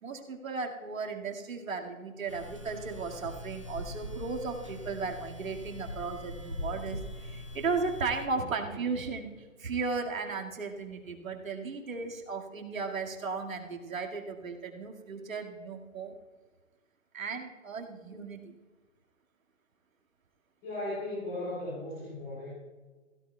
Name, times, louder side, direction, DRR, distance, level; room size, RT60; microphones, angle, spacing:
voice 1, 0.0-16.2 17.1-18.5, right 4 dB, 85° right, 1 dB, 2.1 m, -35 dB
sound 1, 2.3-8.3, left 1 dB, 25° right, 0.5 m, -42 dB
voice 2, 20.6-22.5, left 1 dB, 15° left, -9 dB, 3.4 m, -36 dB
16.5 x 16.0 x 2.3 m, 1.3 s
hypercardioid pair, 175°, 39 cm